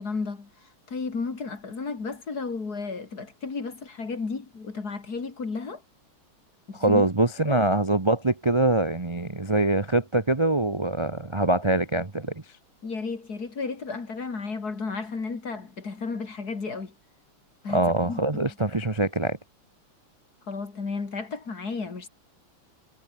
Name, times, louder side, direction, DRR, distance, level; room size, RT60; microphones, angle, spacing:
voice 1, 0.0-5.8 6.7-7.1 7.4-7.6 12.8-16.9 17.6-18.4 20.5-22.1, left 4 dB, 45° left, 3.2 m, -33 dB
voice 2, 6.7-12.3 17.7-19.4, right 2 dB, 20° right, 0.9 m, -24 dB
omnidirectional pair, 2.4 m